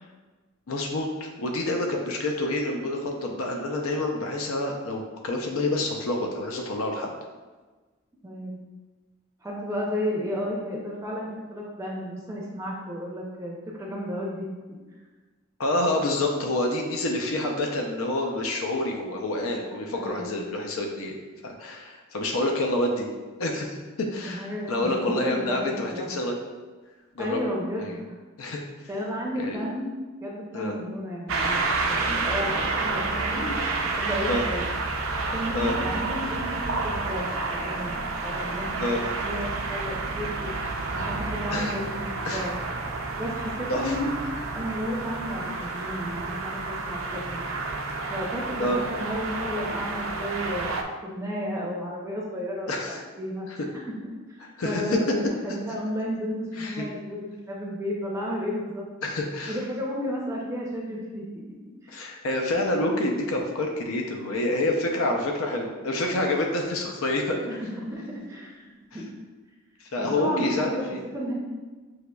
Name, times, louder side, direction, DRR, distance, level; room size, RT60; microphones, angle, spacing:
voice 1, 0.7-7.1 15.6-21.1 21.4-23.1 23.4-26.3 27.1-27.4 27.8-27.9 28.4-28.6 29.4-29.6 30.5-30.7 32.1-32.2 34.3-34.4 35.5-35.8 38.8-39.0 41.5-41.8 42.2-42.5 43.7-43.9 48.6-48.8 52.7-53.0 53.5-53.6 54.6-55.0 56.6-56.8 59.0-59.6 61.9-67.4 69.8-71.0, left 1 dB, 75° left, 1 dB, 0.5 m, -28 dB
voice 2, 8.2-8.6 9.4-14.5 20.0-20.3 24.2-26.1 27.2-28.0 28.9-29.9 30.2-33.5 33.8-34.7 35.2-40.6 40.9-42.6 43.2-44.0 44.5-47.5 48.1-53.5 53.7-53.9 54.3-58.9 59.5-61.4 61.8-62.1 67.5-69.0 70.0-71.3, equal, 15° right, -3 dB, 0.5 m, -33 dB
sound 1, 31.3-50.8, right 3 dB, 65° right, 0.5 m, -30 dB
6.2 x 2.9 x 2.2 m, 1.3 s
head